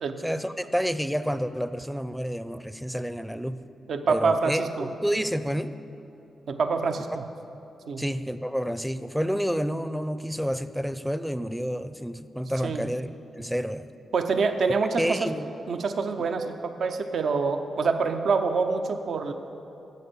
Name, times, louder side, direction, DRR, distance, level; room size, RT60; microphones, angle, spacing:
voice 1, 0.2-3.6 4.1-5.8 8.0-13.1 13.4-13.9 15.0-15.5, equal, ahead, 12 dB, 0.5 m, -29 dB
voice 2, 3.9-4.9 6.5-7.2 7.9-8.0 12.6-12.8 14.1-15.3 15.7-19.3, right 4 dB, 65° right, 7 dB, 0.6 m, -26 dB
10.5 x 7.9 x 6.8 m, 2.9 s
supercardioid pair, 45°, 0 cm